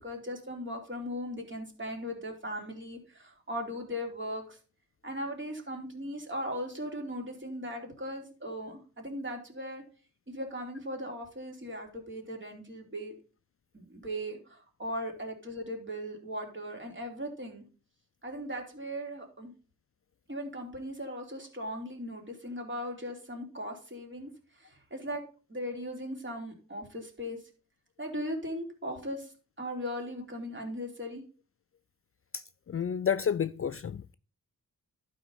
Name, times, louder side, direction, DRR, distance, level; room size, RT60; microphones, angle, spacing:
voice 1, 0.0-4.6 5.0-9.8 10.3-13.1 13.7-17.6 18.2-19.5 20.3-24.3 24.6-25.2 25.5-27.4 28.0-29.3 29.6-31.2, equal, 35° right, 3.3 m, -38 dB
voice 2, 32.7-34.1, left 8 dB, 40° left, 0.4 m, -30 dB
12.0 x 5.1 x 5.5 m
wide cardioid pair, 80°, 34 cm